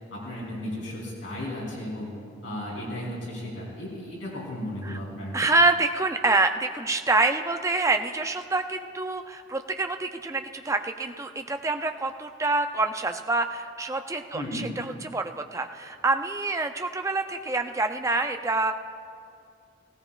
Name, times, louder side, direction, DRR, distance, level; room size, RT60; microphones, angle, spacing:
voice 1, 0.1-2.1 2.4-5.4 14.3-14.7, left 1 dB, 85° left, -4 dB, 3.5 m, -35 dB
voice 2, 5.3-18.7, right 3 dB, 15° right, 6 dB, 0.4 m, -26 dB
17.0 x 17.0 x 2.4 m, 2.3 s
head